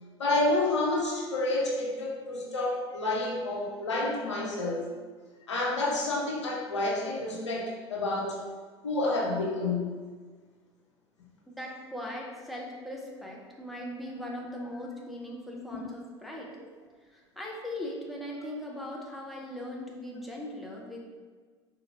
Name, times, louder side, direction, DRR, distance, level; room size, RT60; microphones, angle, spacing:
voice 1, 0.2-4.9 5.5-8.4 8.8-9.9, left 2 dB, 80° left, -2 dB, 0.6 m, -29 dB
voice 2, 11.5-16.5 17.1-21.0, left 1 dB, ahead, -3 dB, 0.7 m, -39 dB
4.0 x 2.5 x 2.9 m, 1.5 s
figure-of-eight pair, 70°, 15 cm